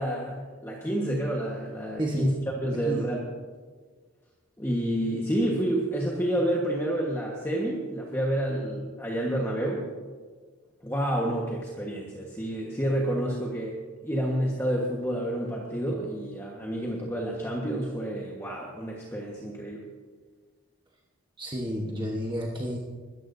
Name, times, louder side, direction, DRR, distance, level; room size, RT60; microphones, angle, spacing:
voice 1, 0.0-3.3 4.6-9.9 10.8-19.9, right 1 dB, 10° left, -2 dB, 1.3 m, -29 dB
voice 2, 2.0-2.3 2.9-3.0 21.4-22.8, equal, 20° right, -2 dB, 1.2 m, -30 dB
21.0 x 13.5 x 2.7 m, 1.5 s
head